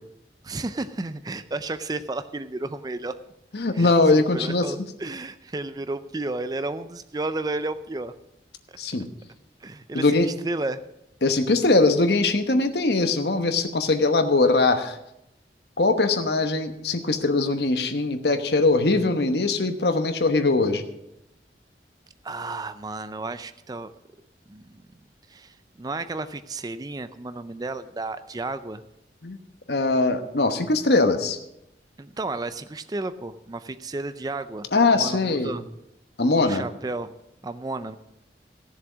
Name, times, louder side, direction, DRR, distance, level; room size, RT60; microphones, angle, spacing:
voice 1, 0.4-3.2 3.7-8.1 8.7-8.8 9.6-10.8 22.2-23.9 24.5-28.8 32.0-34.7 34.9-35.6 36.2-37.1 37.4-38.0, right 2 dB, 20° right, 12 dB, 0.4 m, -33 dB
voice 2, 3.5-4.7 8.8-9.1 9.9-10.3 11.2-15.0 15.8-20.8 29.2-29.4 29.7-31.4 34.7-35.5 36.2-36.6, left 3 dB, 70° left, 7 dB, 1.1 m, -21 dB
15.5 x 7.2 x 6.1 m, 0.85 s
head